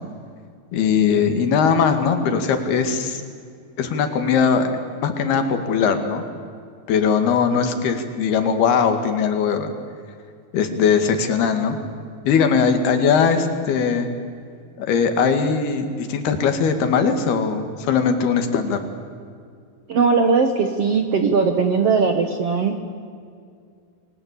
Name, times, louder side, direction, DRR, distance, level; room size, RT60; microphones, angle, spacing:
voice 1, 0.7-3.2 3.8-4.7 5.0-6.2 6.9-9.7 10.5-11.8 12.3-14.1 14.8-18.9, left 6 dB, 85° left, 7 dB, 4.1 m, -20 dB
voice 2, 19.9-22.8, right 5 dB, 60° right, 6 dB, 1.7 m, -19 dB
29.5 x 22.0 x 8.4 m, 2.3 s
omnidirectional pair, 4.4 m